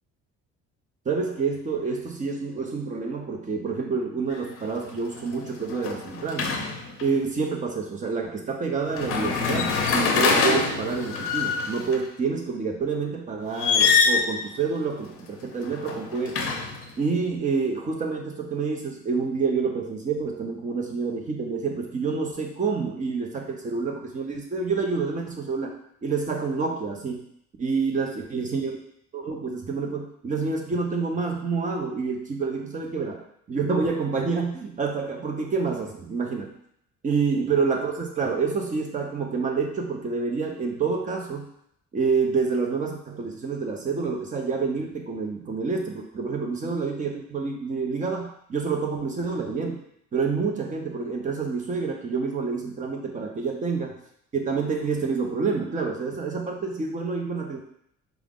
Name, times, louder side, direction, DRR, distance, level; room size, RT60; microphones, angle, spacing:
voice 1, 1.1-6.5 7.0-16.4 17.0-25.7 26.0-27.3 27.6-28.8 29.1-36.5 37.0-41.5 41.9-49.8 50.1-53.9 54.3-57.6, right 4 dB, 25° right, 2 dB, 0.6 m, -28 dB
sound 1, 4.3-4.6 4.9-7.1 8.9-12.0 13.5-14.3 15.5-16.9, left 5 dB, 50° left, 0.6 m, -24 dB
4.6 x 2.0 x 3.6 m, 0.71 s
cardioid pair, 140°, 29 cm